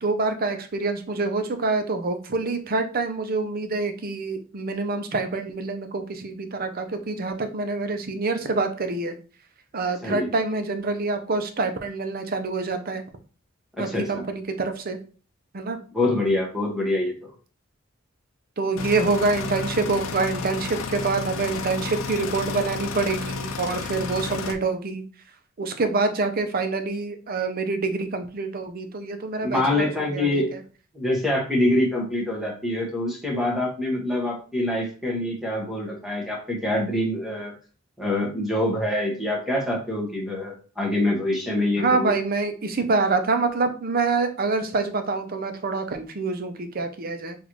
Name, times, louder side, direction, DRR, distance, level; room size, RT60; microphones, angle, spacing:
voice 1, 0.0-9.1 9.7-13.0 13.8-15.0 15.5-15.8 18.6-25.0 25.6-29.8 30.1-30.4 41.8-47.4, right 3 dB, 45° right, 8 dB, 0.6 m, -26 dB
voice 2, 13.8-14.2 15.9-17.3 29.4-30.5 30.9-37.5 38.0-42.1, left 1 dB, ahead, -2 dB, 1.3 m, -25 dB
sound 1, 18.8-24.5, left 5 dB, 80° left, 0.5 m, -32 dB
6.0 x 2.5 x 3.1 m, 0.38 s
head